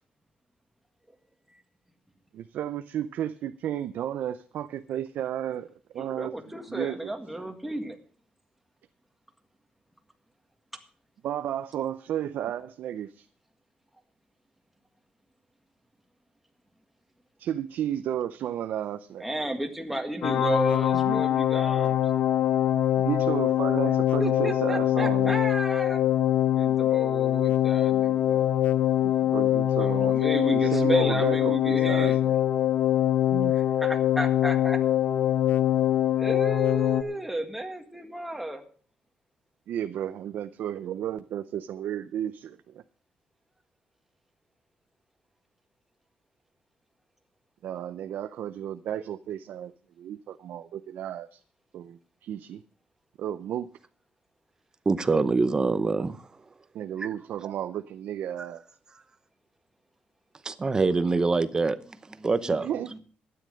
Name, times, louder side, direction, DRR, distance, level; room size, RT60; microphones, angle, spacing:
voice 1, 2.3-5.7 5.9-6.3 6.7-7.1 11.2-13.3 17.4-19.3 21.0-21.2 23.0-25.4 29.0-30.1 30.5-32.3 33.3-33.6 39.7-42.8 47.6-49.7 50.0-51.4 51.7-52.6 53.2-53.7 56.7-58.6 62.6-63.0, right 10 dB, 75° right, 0.6 m, -33 dB
voice 2, 6.0-8.0 19.2-22.0 24.2-26.0 26.5-28.5 29.8-32.2 33.5-34.8 36.2-38.6 61.8-63.0, right 1 dB, 5° right, 1.8 m, -33 dB
sound 1, 20.2-37.0, left 11 dB, 85° left, 0.8 m, -23 dB
voice 3, 54.9-56.2 60.4-61.8 62.2-62.7, right 3 dB, 25° right, 0.8 m, -24 dB
12.5 x 9.8 x 6.4 m
cardioid pair, 145°, 3 cm